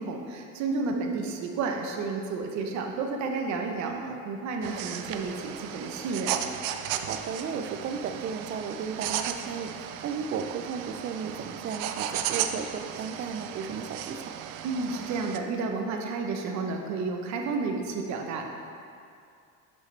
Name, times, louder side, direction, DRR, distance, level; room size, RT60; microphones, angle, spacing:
voice 1, 0.0-3.9 4.2-6.4 14.6-18.5, right 4 dB, 55° right, 3 dB, 0.9 m, -31 dB
voice 2, 0.9-1.3 3.8-4.2 7.0-14.3, right 6 dB, 35° right, 8 dB, 0.4 m, -35 dB
sound 1, 4.6-15.4, right 10 dB, 90° right, 0.5 m, -35 dB
8.0 x 6.5 x 3.3 m, 2.4 s
cardioid pair, 155°, 34 cm